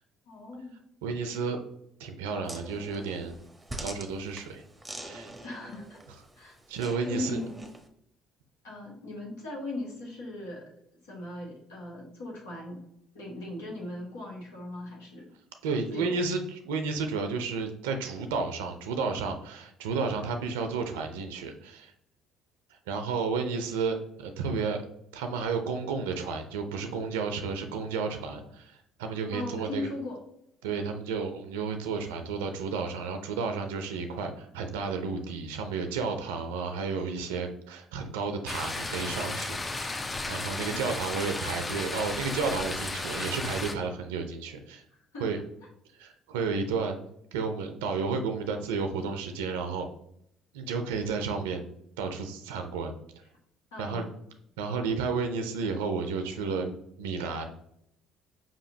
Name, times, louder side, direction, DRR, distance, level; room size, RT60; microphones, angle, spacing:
voice 1, 0.3-0.8 5.4-6.0 6.4-6.6 7.0-7.7 8.6-10.7 11.0-12.8 13.1-15.3 15.9-16.2 28.3-28.5 29.3-30.2 45.1-45.3 53.7-54.1 56.4-56.5, left 2 dB, 85° left, -2 dB, 1.2 m, -38 dB
voice 2, 1.0-1.6 2.0-3.3 3.8-4.6 5.0-5.3 6.7-7.4 15.6-21.9 22.9-24.8 25.1-29.9 30.6-44.8 45.2-45.4 46.0-47.0 47.3-49.9 50.5-51.6 52.0-52.9 53.8-54.0 54.6-57.4, right 4 dB, 90° right, 6 dB, 0.4 m, -32 dB
sound 1, 2.5-7.9, right 1 dB, 10° right, 0.8 m, -44 dB
sound 2, 38.5-43.7, left 2 dB, 25° left, 0.5 m, -34 dB
5.1 x 2.8 x 2.7 m, 0.74 s
hypercardioid pair, 65°, 0 cm